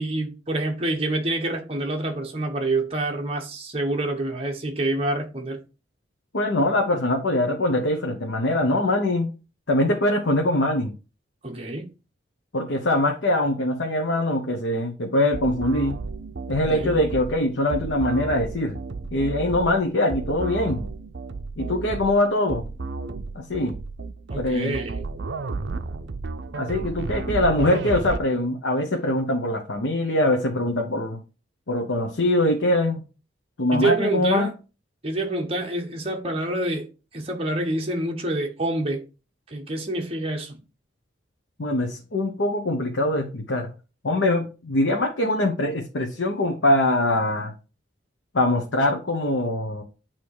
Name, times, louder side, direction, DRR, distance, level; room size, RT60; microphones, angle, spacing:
voice 1, 0.0-5.6 11.4-11.9 16.7-17.0 24.3-25.1 33.7-34.5 35.0-36.9 37.1-39.1 39.5-40.6, right 2 dB, 30° right, 1.2 m, -27 dB
voice 2, 6.3-9.3 9.7-10.9 12.5-16.0 16.5-18.8 19.1-20.9 21.6-22.6 23.3-23.8 24.4-24.8 26.5-31.2 31.7-33.0 33.6-34.5 41.6-43.7 44.0-47.5 48.3-49.8, left 1 dB, 85° left, 1.0 m, -23 dB
sound 1, 15.3-28.2, right 3 dB, 75° right, 0.5 m, -33 dB
8.9 x 3.0 x 4.8 m
head